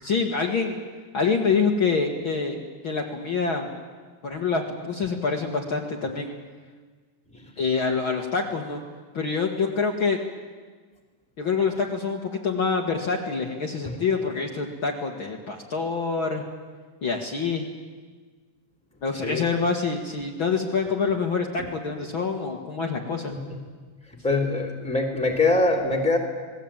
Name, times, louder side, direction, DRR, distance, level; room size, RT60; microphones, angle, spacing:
voice 1, 0.0-0.8 1.1-2.6 2.8-3.7 4.2-6.3 7.6-8.8 9.1-10.2 11.4-16.4 17.0-17.6 19.0-23.3, left 5 dB, 45° left, 1 dB, 2.4 m, -26 dB
voice 2, 24.2-26.2, left 2 dB, ahead, 3 dB, 3.0 m, -24 dB
27.5 x 19.5 x 9.0 m, 1.5 s
omnidirectional pair, 3.4 m